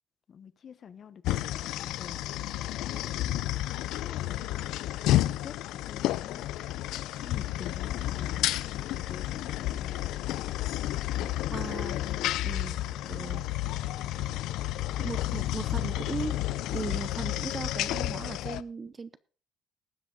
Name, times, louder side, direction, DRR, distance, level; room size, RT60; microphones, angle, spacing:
voice 1, 0.3-2.2 2.9-3.3 4.0-4.7 5.3-6.6 7.0-10.1 11.2-11.8 12.3-13.7, left 7 dB, 35° left, 14 dB, 1.0 m, -48 dB
sound 1, 1.2-18.6, left 14 dB, 75° left, 0.6 m, -31 dB
voice 2, 11.5-11.9 12.4-13.4 15.0-16.3 16.7-19.2, right 4 dB, 20° right, 15 dB, 0.6 m, -38 dB
19.0 x 7.9 x 3.8 m, 0.37 s
cardioid pair, 160°, 0 cm